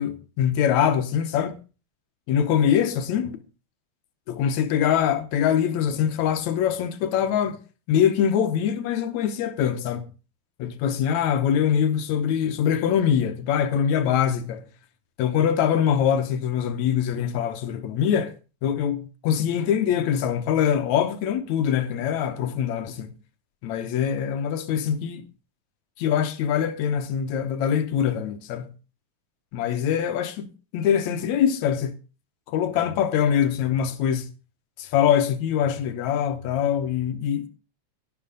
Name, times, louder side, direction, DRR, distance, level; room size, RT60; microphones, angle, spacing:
voice 1, 0.0-1.6 2.3-3.4 4.3-7.6 7.9-10.1 10.6-14.6 15.2-18.3 18.6-23.1 23.6-25.2 26.0-28.7 29.5-30.5 30.7-32.0 32.5-34.3 34.8-37.5, left 8 dB, 75° left, 2.2 m, -23 dB
11.5 x 10.5 x 3.9 m
omnidirectional pair, 3.3 m